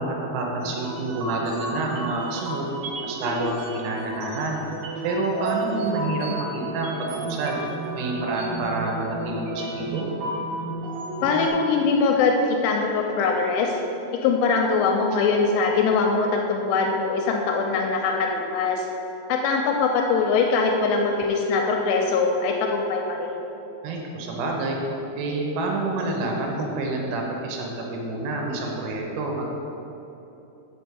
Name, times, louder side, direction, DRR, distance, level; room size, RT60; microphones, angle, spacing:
voice 1, 0.0-2.7 3.0-4.6 5.0-7.6 7.9-10.1 23.8-24.8 25.2-29.5, right 2 dB, 85° right, 0 dB, 3.4 m, -28 dB
sound 1, 0.6-11.5, right 2 dB, 60° right, 2.8 m, -32 dB
voice 2, 11.2-13.7 14.2-18.9 19.3-23.4, left 4 dB, 80° left, 2 dB, 2.9 m, -22 dB
6.3 x 5.7 x 7.0 m, 3.0 s
omnidirectional pair, 5.8 m